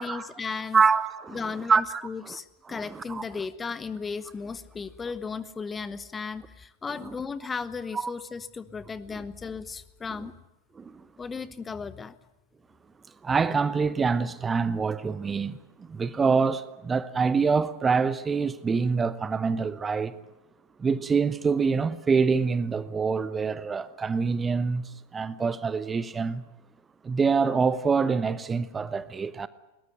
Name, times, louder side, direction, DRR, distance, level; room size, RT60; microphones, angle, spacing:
voice 1, 0.0-0.8 1.3-10.3 11.2-12.2, left 5 dB, 15° left, 0.9 m, -35 dB
voice 2, 0.7-1.4 1.7-2.4 2.7-3.4 7.0-7.1 7.9-8.1 9.1-9.2 10.8-11.0 13.2-20.1 20.8-26.4 27.0-29.5, right 5 dB, 15° right, 0.9 m, -26 dB
21.5 x 19.0 x 9.3 m
figure-of-eight pair, 90°, 0 cm